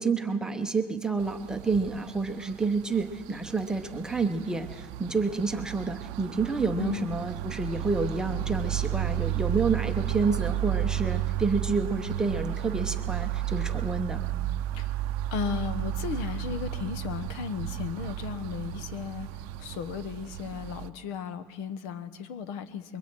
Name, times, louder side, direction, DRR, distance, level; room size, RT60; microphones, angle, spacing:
voice 1, 0.0-14.2, right 4 dB, 5° right, 5 dB, 0.8 m, -29 dB
sound 1, 1.2-20.9, right 13 dB, 65° right, 0.6 m, -33 dB
voice 2, 6.7-7.1 14.7-15.0 15.3-19.3 19.6-23.0, left 7 dB, 65° left, 12 dB, 1.1 m, -35 dB
25.5 x 22.5 x 4.6 m, 1.5 s
cardioid pair, 180°, 11 cm